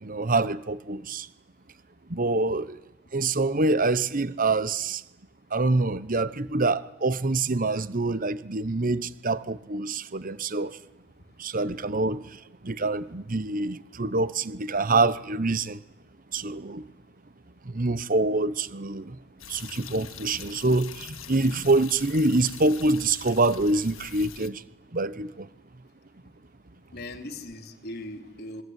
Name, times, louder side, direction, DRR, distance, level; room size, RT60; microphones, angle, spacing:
voice 1, 0.0-1.3 2.1-2.8 3.1-5.0 5.5-10.8 11.4-12.2 12.6-15.8 16.3-16.8 17.7-19.2 19.5-24.6 24.9-25.5, right 2 dB, 40° right, 1.0 m, -25 dB
sound 1, 19.4-24.5, left 8 dB, 65° left, 1.9 m, -44 dB
voice 2, 26.9-28.6, left 1 dB, 50° left, 3.1 m, -39 dB
27.5 x 23.0 x 9.4 m
head